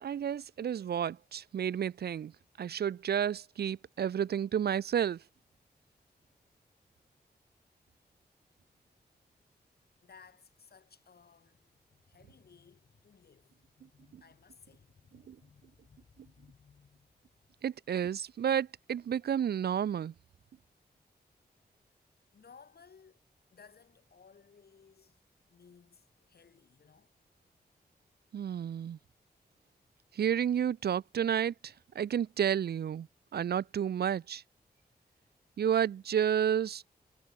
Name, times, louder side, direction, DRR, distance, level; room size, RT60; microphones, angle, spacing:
voice 1, 0.0-2.3 2.6-5.2 14.1-14.2 15.1-15.4 17.6-20.1 28.3-29.0 30.1-34.4 35.6-36.8, right 9 dB, 70° right, 0.5 m, -31 dB
voice 2, 10.0-17.1 22.3-23.2 23.5-25.2 25.5-27.1, left 6 dB, 70° left, 3.8 m, -60 dB
cardioid pair, 70°, 17 cm